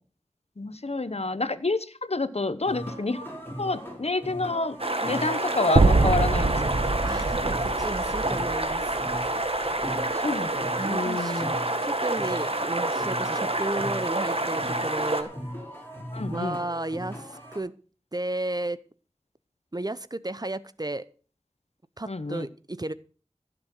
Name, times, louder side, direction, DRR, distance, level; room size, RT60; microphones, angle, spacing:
voice 1, 0.6-3.3 3.6-4.8 5.0-6.6 10.2-10.6 10.9-11.5 16.1-16.6 22.1-22.5, left 3 dB, 65° left, 13 dB, 1.0 m, -28 dB
sound 1, 2.6-17.6, equal, 20° left, 5.6 m, -39 dB
sound 2, 4.8-15.2, right 2 dB, 55° right, 1.6 m, -28 dB
sound 3, 5.8-9.9, right 3 dB, 80° right, 1.0 m, -24 dB
voice 2, 7.0-9.0 10.8-11.4 11.8-15.3 16.3-17.7 18.1-18.8 19.7-21.0 22.0-22.9, right 2 dB, 35° right, 15 dB, 0.7 m, -33 dB
15.5 x 7.0 x 6.2 m, 0.39 s
wide cardioid pair, 40°, 11 cm